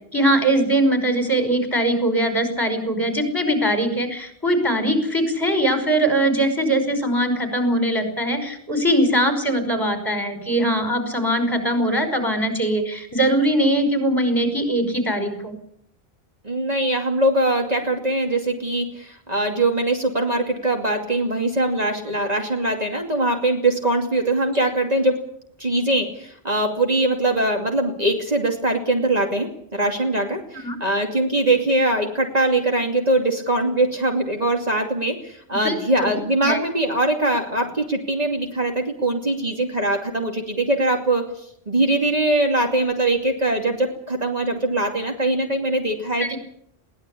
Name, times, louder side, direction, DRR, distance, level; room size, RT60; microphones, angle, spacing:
voice 1, 0.1-15.5 30.5-30.8 35.5-36.1 36.4-36.6 46.2-46.4, right 1 dB, 20° left, 6 dB, 5.4 m, -21 dB
voice 2, 16.4-25.3 25.6-41.3 41.7-46.3, right 1 dB, 40° right, 2 dB, 2.7 m, -22 dB
22.0 x 17.5 x 8.5 m, 0.69 s
omnidirectional pair, 1.1 m